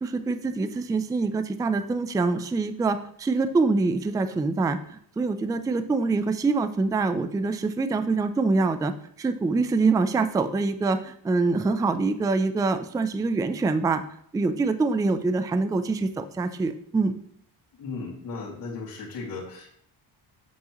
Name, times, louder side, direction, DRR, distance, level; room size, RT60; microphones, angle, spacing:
voice 1, 0.0-14.0 14.3-17.1, right 3 dB, 10° right, 11 dB, 0.3 m, -25 dB
voice 2, 17.8-19.7, left 4 dB, 60° left, -8 dB, 2.3 m, -36 dB
8.0 x 7.6 x 3.0 m, 0.66 s
cardioid pair, 135°, 41 cm